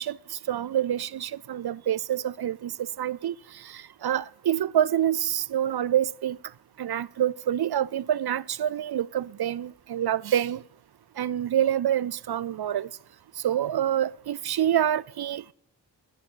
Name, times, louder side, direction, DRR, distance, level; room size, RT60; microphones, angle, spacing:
voice 1, 0.0-6.4 6.8-10.6 11.2-12.9 13.4-15.5, right 10 dB, 65° right, 0.5 m, -27 dB
17.5 x 11.5 x 4.6 m
cardioid pair, 45°, 42 cm